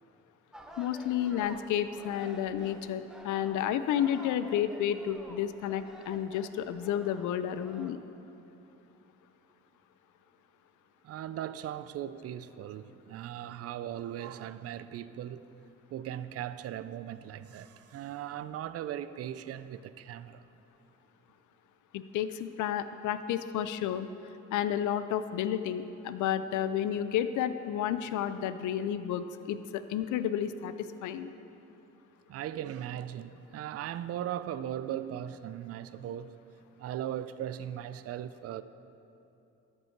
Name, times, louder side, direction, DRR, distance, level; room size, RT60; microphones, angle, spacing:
sound 1, 0.5-7.9, equal, ahead, 0.8 m, -50 dB
voice 1, 0.8-8.0 21.9-24.1 24.5-31.3, left 10 dB, 80° left, 0.5 m, -31 dB
voice 2, 11.0-15.5 15.9-20.5 32.3-36.3 36.8-38.6, right 11 dB, 55° right, 0.4 m, -38 dB
13.5 x 5.5 x 4.5 m
cardioid pair, 90°, 30 cm